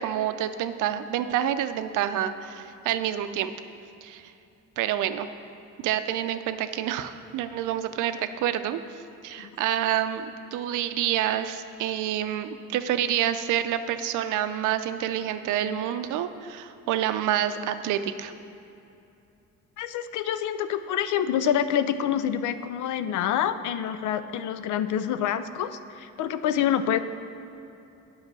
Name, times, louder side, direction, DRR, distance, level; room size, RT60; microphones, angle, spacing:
voice 1, 0.0-3.5 4.0-4.3 4.8-5.3 5.8-18.3, right 11 dB, 85° right, 10 dB, 0.5 m, -28 dB
voice 2, 19.8-27.0, left 9 dB, 80° left, 12 dB, 0.5 m, -27 dB
8.8 x 5.5 x 6.1 m, 2.8 s
cardioid pair, 90°, 30 cm